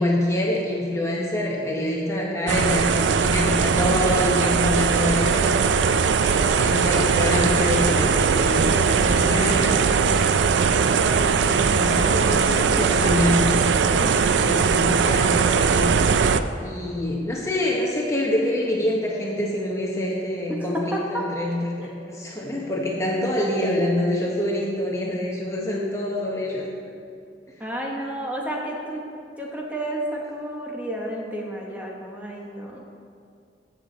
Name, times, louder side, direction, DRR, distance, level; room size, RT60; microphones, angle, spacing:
voice 1, 0.0-5.5 6.2-9.8 11.0-16.0 16.6-26.6, left 1 dB, 15° left, -2 dB, 0.9 m, -26 dB
sound 1, 2.5-16.4, right 5 dB, 85° right, 0.4 m, -20 dB
voice 2, 14.0-14.6 20.5-21.2 22.4-22.6 27.6-29.0 29.4-32.9, right 1 dB, 10° right, -2 dB, 1.1 m, -31 dB
14.0 x 6.7 x 3.9 m, 2.4 s
head